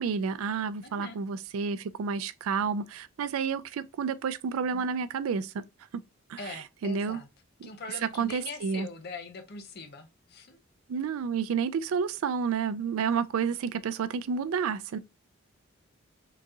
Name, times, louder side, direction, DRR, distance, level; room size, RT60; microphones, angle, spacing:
voice 1, 0.0-5.6 6.3-7.2 7.6-7.7 8.2-8.9 10.9-15.0, right 6 dB, 80° right, 0.3 m, -30 dB
voice 2, 0.8-1.2 6.4-7.3 7.6-10.6, left 3 dB, 50° left, 0.6 m, -42 dB
3.8 x 2.7 x 2.3 m
head